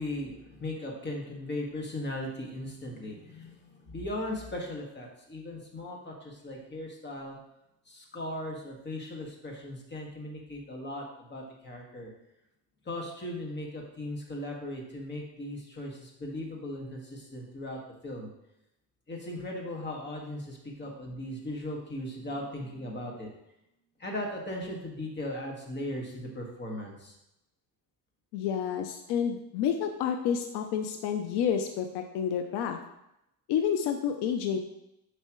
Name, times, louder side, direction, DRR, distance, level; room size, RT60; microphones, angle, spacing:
voice 1, 0.0-7.4 7.9-12.1 12.9-18.3 19.1-23.3 24.0-27.1, left 1 dB, 25° left, -1 dB, 2.0 m, -38 dB
voice 2, 28.3-32.8 33.5-34.6, left 8 dB, 80° left, 6 dB, 0.8 m, -29 dB
10.0 x 5.6 x 3.2 m, 0.84 s
cardioid pair, 125°, 39 cm